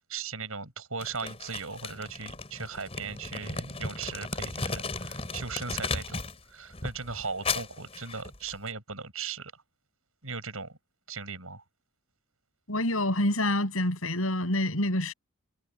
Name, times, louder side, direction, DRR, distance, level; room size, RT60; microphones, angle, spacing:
voice 1, 0.1-6.2 6.5-9.6 10.2-10.8 11.1-11.6, right 5 dB, 75° right, 6.4 m, -38 dB
Crumpling crinkling, 1.0-6.4 6.7-8.7, left 3 dB, 25° left, 5.2 m, -36 dB
voice 2, 12.7-15.1, left 1 dB, 70° left, 7.0 m, -27 dB
head